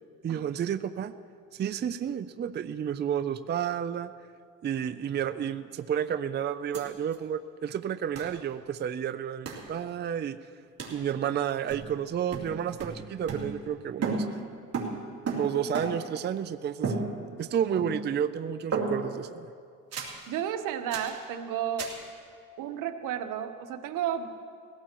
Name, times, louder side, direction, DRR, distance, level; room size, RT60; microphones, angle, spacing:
voice 1, 0.2-1.1 1.5-4.1 4.6-10.4 10.9-14.3 15.3-16.9 17.4-19.5, right 9 dB, 35° right, 11 dB, 0.5 m, -31 dB
sound 1, 6.7-6.8 7.1-7.2 8.1-8.4 9.4-9.7 10.8-11.0 11.7-12.0 12.3-13.8 14.0-16.2 16.8-17.5 17.8-18.2 18.7-19.2 19.9-20.2 20.9-21.2 21.8-22.0, right 4 dB, 50° right, 2.9 m, -34 dB
voice 2, 20.3-21.9 22.6-24.3, right 9 dB, 80° right, 8 dB, 1.1 m, -32 dB
20.5 x 17.0 x 3.0 m, 2.2 s
cardioid pair, 110°, 32 cm